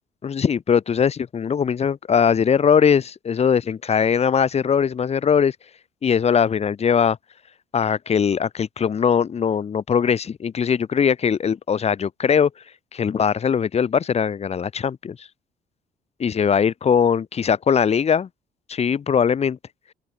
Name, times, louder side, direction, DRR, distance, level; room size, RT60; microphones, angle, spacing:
voice 1, 0.2-5.5 6.0-7.2 7.7-12.5 12.9-15.2 16.2-18.3 18.7-19.6, left 7 dB, 40° left, 3.2 m, -20 dB
open air
cardioid pair, 110°, 17 cm